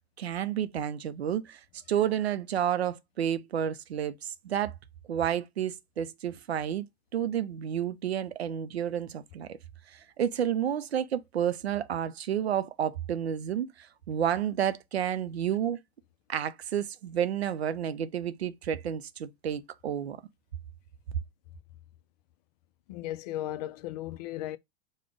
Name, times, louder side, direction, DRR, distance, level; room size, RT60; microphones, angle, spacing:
voice 1, 0.2-1.6 1.9-4.7 5.1-6.9 7.1-9.6 9.9-15.8 16.3-20.2, right 9 dB, 70° right, 0.6 m, -30 dB
voice 2, 22.9-24.6, left 14 dB, 40° left, 0.4 m, -36 dB
5.0 x 2.2 x 4.7 m
figure-of-eight pair, 90°, 33 cm